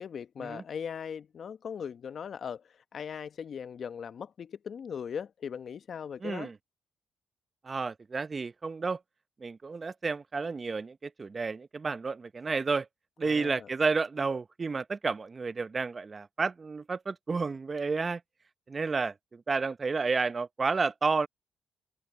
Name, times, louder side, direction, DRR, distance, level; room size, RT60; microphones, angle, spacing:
voice 1, 0.0-2.6 2.9-6.5 13.2-13.7, left 7 dB, 60° left, 1.0 m, -39 dB
voice 2, 6.2-6.6 7.6-9.0 9.4-12.9 13.2-18.2 18.7-21.3, right 4 dB, 35° right, 0.7 m, -31 dB
supercardioid pair, 60°, 0 cm